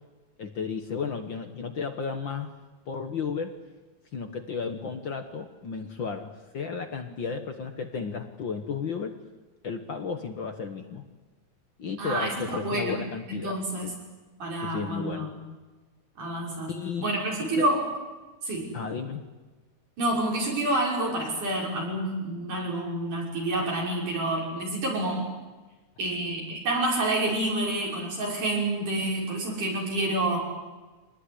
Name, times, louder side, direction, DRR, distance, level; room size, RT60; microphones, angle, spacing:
voice 1, 0.4-2.5 2.9-3.6 4.1-9.2 9.6-11.1 11.8-14.0 14.6-15.3 16.7-17.1 17.4-17.7 18.7-19.2, left 5 dB, 50° left, 7 dB, 1.6 m, -33 dB
voice 2, 12.0-12.9 13.3-13.9 14.4-15.4 16.2-16.7 17.0-17.9 18.4-18.7 20.0-25.2 26.0-30.4, right 1 dB, 90° right, -2 dB, 7.7 m, -28 dB
25.0 x 19.5 x 10.0 m, 1.2 s
omnidirectional pair, 3.4 m